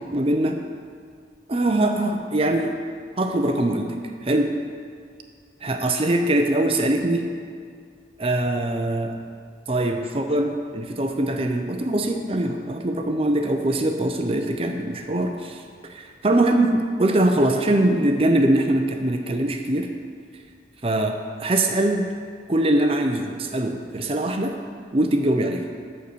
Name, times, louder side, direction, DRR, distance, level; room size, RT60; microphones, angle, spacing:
voice 1, 0.1-0.6 1.5-2.7 3.2-4.5 5.6-7.2 8.2-9.1 9.7-15.6 15.9-19.9 20.8-22.1 22.5-24.6 24.9-25.7, right 1 dB, 30° right, 4 dB, 0.6 m, -22 dB
9.2 x 6.5 x 6.8 m, 2.1 s
head